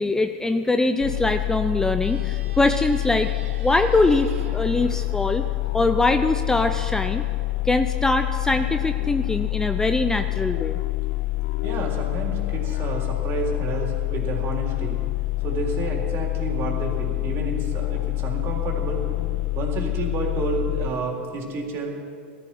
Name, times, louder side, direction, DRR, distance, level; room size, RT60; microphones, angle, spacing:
voice 1, 0.0-3.3 3.6-5.4 5.7-7.2 7.6-10.8, left 2 dB, 10° left, 8 dB, 0.5 m, -22 dB
sound 1, 1.0-20.9, left 20 dB, 65° left, 0.5 m, -27 dB
sound 2, 2.0-6.4, right 5 dB, 90° right, 2.1 m, -48 dB
voice 2, 11.6-15.0 15.4-19.0 19.5-21.9, right 3 dB, 40° right, 0 dB, 3.7 m, -30 dB
19.0 x 13.5 x 4.6 m, 2.2 s
hypercardioid pair, 115°, 6 cm